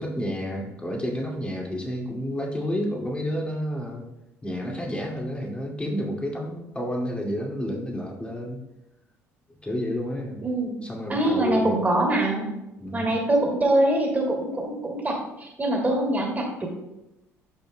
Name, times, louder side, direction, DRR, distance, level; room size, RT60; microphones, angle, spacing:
voice 1, 0.0-4.1 4.4-8.6 9.6-10.4 10.8-11.7 12.8-13.2, equal, 15° left, -1 dB, 2.3 m, -30 dB
voice 2, 10.4-10.8 11.1-12.5 12.9-16.7, right 1 dB, 20° right, 0 dB, 2.7 m, -24 dB
12.0 x 5.3 x 2.2 m, 0.92 s
figure-of-eight pair, 55°, 8 cm